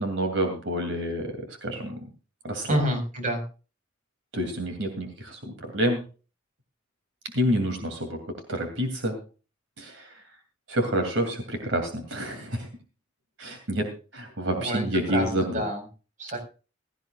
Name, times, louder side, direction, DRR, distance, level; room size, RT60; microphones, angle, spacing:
voice 1, 0.0-1.3 1.6-2.0 2.4-2.8 4.3-6.0 7.3-8.2 8.5-9.2 9.8-10.2 10.7-12.7 13.4-15.6, equal, 80° right, 5 dB, 2.6 m, -28 dB
voice 2, 2.7-3.4 14.6-15.8 16.2-16.4, right 1 dB, 45° right, 5 dB, 4.7 m, -28 dB
16.5 x 15.0 x 2.4 m, 0.34 s
head